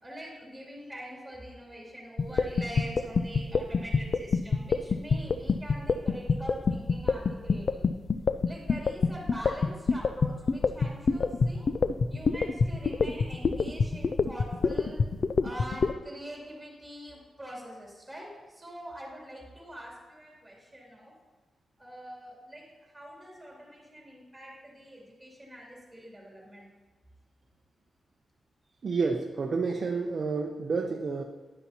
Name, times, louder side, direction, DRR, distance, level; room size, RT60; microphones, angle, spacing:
voice 1, 0.0-7.9 8.5-11.7 12.1-15.0 15.4-21.2 21.8-26.7, equal, 5° right, -4 dB, 2.5 m, -43 dB
sound 1, 2.2-15.9, left 5 dB, 45° left, 0.3 m, -25 dB
voice 2, 28.8-31.2, right 4 dB, 45° right, 1 dB, 0.6 m, -29 dB
9.9 x 9.8 x 2.8 m, 1.3 s
wide cardioid pair, 145°, 0 cm